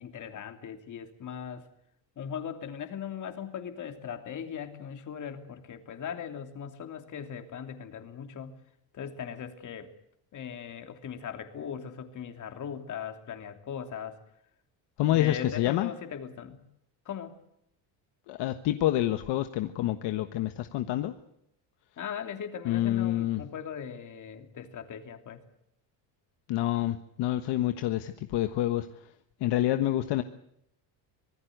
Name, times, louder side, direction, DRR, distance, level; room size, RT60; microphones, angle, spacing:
voice 1, 0.0-1.6 2.2-8.6 8.9-9.9 10.3-14.2 15.1-16.6 17.0-17.4 22.0-25.4, left 8 dB, 40° left, 7 dB, 3.0 m, -39 dB
voice 2, 15.0-15.9 18.3-21.1 22.6-23.4 26.5-29.1 29.4-30.2, left 14 dB, 65° left, 9 dB, 1.4 m, -28 dB
25.5 x 18.0 x 8.0 m, 0.74 s
cardioid pair, 135°, 45 cm